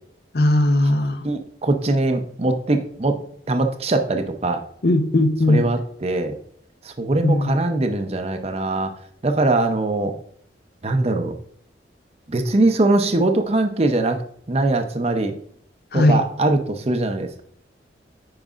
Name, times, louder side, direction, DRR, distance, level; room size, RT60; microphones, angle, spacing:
voice 1, 0.3-1.3 4.8-5.7 7.2-7.6 15.9-16.2, left 1 dB, 60° left, 0.7 m, -18 dB
voice 2, 1.2-3.2 3.5-4.6 5.5-6.4 6.8-8.9 9.2-10.1 10.8-11.3 12.3-14.2 14.5-15.3 15.9-17.4, right 2 dB, 35° right, 0.6 m, -21 dB
8.8 x 5.2 x 2.4 m
head